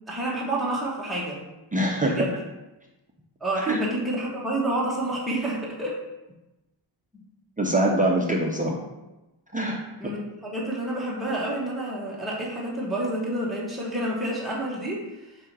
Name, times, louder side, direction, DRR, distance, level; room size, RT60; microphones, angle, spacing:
voice 1, 0.1-1.4 2.2-2.3 3.4-6.0 7.1-7.2 10.0-15.3, right 1 dB, ahead, -6 dB, 1.2 m, -29 dB
voice 2, 1.7-2.3 3.7-3.8 7.6-8.8 9.5-9.8, right 1 dB, 20° right, -1 dB, 0.6 m, -23 dB
7.5 x 2.8 x 4.6 m, 1.0 s
wide cardioid pair, 150°, 46 cm